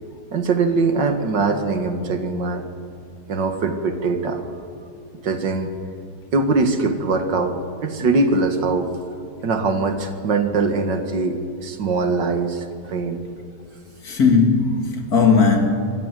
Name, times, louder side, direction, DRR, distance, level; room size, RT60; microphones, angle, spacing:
voice 1, 0.3-2.6 3.3-4.4 5.2-5.7 6.3-8.9 9.4-13.2, right 3 dB, 85° right, 2.3 m, -22 dB
voice 2, 14.0-15.7, left 4 dB, 55° left, 2.6 m, -17 dB
24.0 x 14.5 x 9.3 m
omnidirectional pair, 1.9 m